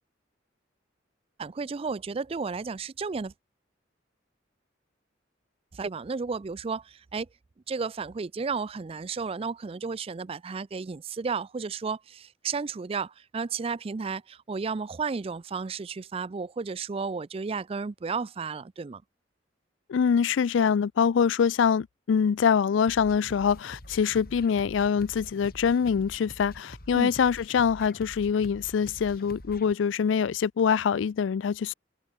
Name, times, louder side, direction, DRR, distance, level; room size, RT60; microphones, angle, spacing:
voice 1, 1.4-3.3 5.7-7.3 7.7-19.0 26.9-27.1, right 5 dB, 30° right, 0.4 m, -33 dB
voice 2, 19.9-31.7, left 6 dB, 85° left, 0.4 m, -24 dB
sound 1, 22.9-29.7, left 1 dB, 55° left, 5.2 m, -46 dB
head